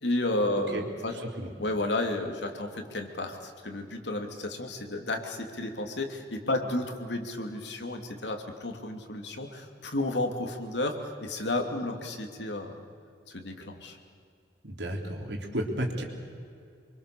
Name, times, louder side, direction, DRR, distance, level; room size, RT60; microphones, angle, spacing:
voice 1, 0.0-1.2 1.6-12.9 13.3-14.0, left 2 dB, 80° left, 4 dB, 2.8 m, -32 dB
voice 2, 1.1-1.5 14.6-16.0, right 1 dB, 75° right, 2 dB, 3.6 m, -33 dB
26.0 x 24.0 x 6.9 m, 2.4 s
head